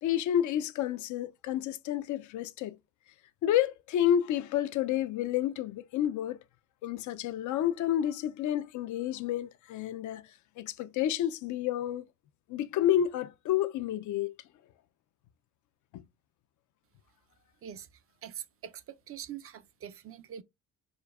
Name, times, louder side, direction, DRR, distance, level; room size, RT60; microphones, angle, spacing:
voice 1, 0.0-2.8 3.4-6.4 6.8-10.2 10.6-12.0 12.5-14.3 15.9-16.0, left 11 dB, 75° left, 0.5 m, -30 dB
voice 2, 18.2-20.4, right 9 dB, 50° right, 0.5 m, -44 dB
5.0 x 2.2 x 2.3 m
cardioid pair, 90°, 30 cm